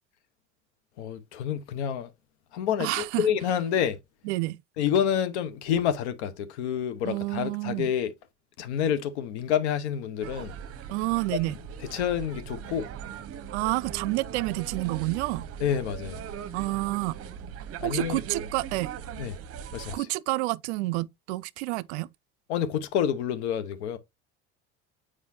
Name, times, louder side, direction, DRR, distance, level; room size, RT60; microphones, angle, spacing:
voice 1, 1.0-2.1 2.5-4.0 4.8-8.1 8.6-10.5 11.5-11.6 11.8-12.9 15.6-16.2 17.8-18.2 19.2-19.4 19.7-20.1 22.5-24.0, left 9 dB, 85° left, 1.1 m, -28 dB
voice 2, 2.8-3.2 4.3-4.6 7.0-7.9 10.9-11.5 13.5-15.5 16.5-17.2 17.8-18.9 19.9-22.1, right 21 dB, 80° right, 0.5 m, -29 dB
sound 1, 10.2-19.9, right 8 dB, 45° right, 0.8 m, -39 dB
7.6 x 4.9 x 2.7 m
hypercardioid pair, 85°, 33 cm